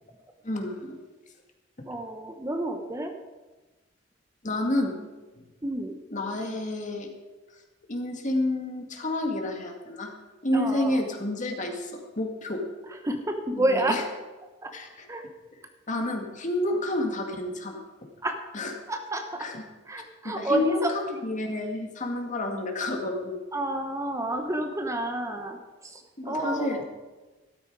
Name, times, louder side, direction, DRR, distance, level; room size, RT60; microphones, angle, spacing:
voice 1, 0.4-1.0 4.4-5.1 6.1-7.1 7.9-10.1 10.4-11.9 12.2-12.6 13.5-14.0 14.7-15.1 15.9-18.1 18.5-18.7 19.4-19.6 20.2-23.4 26.2-26.8, left 1 dB, 40° left, 3 dB, 2.1 m, -29 dB
voice 2, 1.9-3.1 5.6-6.0 10.5-11.0 12.9-14.0 14.6-14.7 15.1-15.3 18.2-18.4 18.9-19.5 19.9-21.0 23.5-26.8, right 1 dB, 15° right, 5 dB, 1.0 m, -30 dB
13.5 x 13.0 x 4.8 m, 1.2 s
head